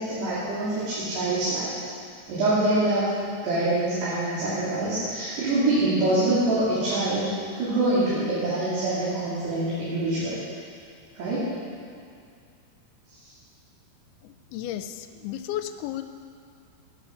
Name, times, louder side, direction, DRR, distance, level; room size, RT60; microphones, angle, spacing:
voice 1, 0.0-1.7 2.3-3.1 3.4-7.3 7.6-10.4 11.2-11.5, right 2 dB, 85° right, -10 dB, 5.2 m, -25 dB
voice 2, 14.2-16.0, left 12 dB, 85° left, 9 dB, 2.5 m, -34 dB
18.0 x 10.5 x 5.8 m, 2.3 s
omnidirectional pair, 4.6 m